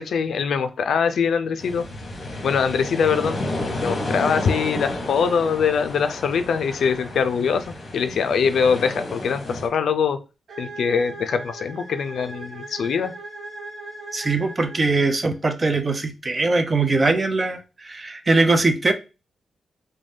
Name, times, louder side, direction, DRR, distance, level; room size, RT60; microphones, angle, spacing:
voice 1, 0.0-1.9 2.4-3.4 3.8-10.2 10.6-13.1, left 6 dB, 80° left, 0.3 m, -23 dB
sound 1, 1.6-9.7, left 2 dB, 50° left, 0.9 m, -31 dB
sound 2, 10.5-15.4, right 2 dB, 65° right, 1.0 m, -38 dB
voice 2, 14.1-18.9, right 3 dB, 30° right, 0.5 m, -21 dB
2.6 x 2.1 x 3.2 m
cardioid pair, 100°, 0 cm